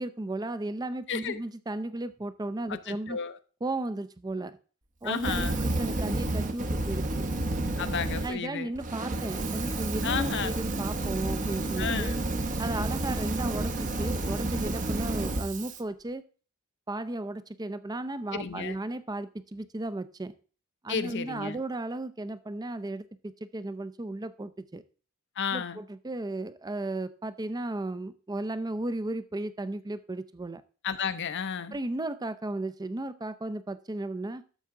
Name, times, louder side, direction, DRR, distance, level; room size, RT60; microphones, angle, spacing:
voice 1, 0.0-3.2 3.6-4.6 5.0-7.3 7.8-7.9 8.2-12.1 12.6-16.2 16.9-20.3 20.8-24.8 25.5-30.6 31.7-34.4, right 2 dB, 20° right, 13 dB, 0.5 m, -35 dB
voice 2, 1.1-1.4 2.7-3.4 5.0-5.6 7.8-8.7 10.0-10.6 11.8-12.2 18.3-18.8 20.9-21.6 25.4-25.8 30.8-31.8, left 6 dB, 55° left, 12 dB, 0.7 m, -32 dB
Fire, 5.2-8.3 8.7-15.8, right 2 dB, 35° right, 0.8 m, -30 dB
12.0 x 6.9 x 3.7 m, 0.37 s
head